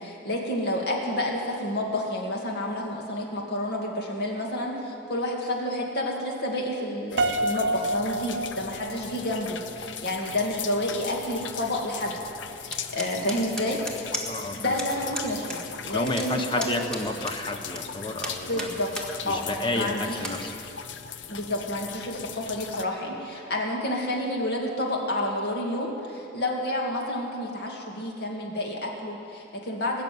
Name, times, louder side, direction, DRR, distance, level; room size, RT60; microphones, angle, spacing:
voice 1, 0.0-12.2 12.5-13.8 14.5-16.7 18.5-18.9 19.3-19.4 19.7-20.2 21.3-30.0, left 1 dB, 60° left, 0 dB, 2.4 m, -29 dB
sound 1, 7.1-22.8, left 7 dB, 85° left, 0.7 m, -39 dB
Piano, 7.2-9.4, right 1 dB, 70° right, 0.5 m, -28 dB
sound 2, 12.7-14.5 14.8-14.9 15.1-15.6 15.8-17.8 18.2-19.1 19.5-19.6 20.1-20.4, right 1 dB, 5° left, 1.6 m, -35 dB
voice 2, 14.2-15.3 15.9-18.7 19.2-20.5, left 1 dB, 30° left, 5 dB, 1.1 m, -31 dB
20.5 x 7.0 x 9.4 m, 2.7 s
head